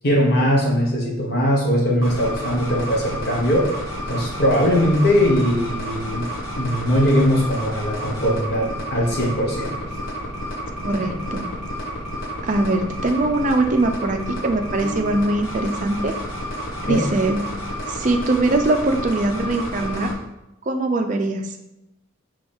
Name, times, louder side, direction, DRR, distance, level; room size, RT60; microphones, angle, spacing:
voice 1, 0.0-3.7 4.1-6.3 6.6-9.8 11.0-11.1 16.8-17.1, equal, 50° left, -3 dB, 1.2 m, -20 dB
sound 1, 2.0-20.1, equal, 75° left, 1.2 m, -30 dB
voice 2, 10.8-11.5 12.4-16.1 16.9-17.4 17.9-20.1 20.7-21.5, right 2 dB, 40° right, 5 dB, 0.4 m, -22 dB
Piano, 14.8-15.8, right 3 dB, 15° left, 1.6 m, -38 dB
4.6 x 3.1 x 3.5 m, 0.90 s
head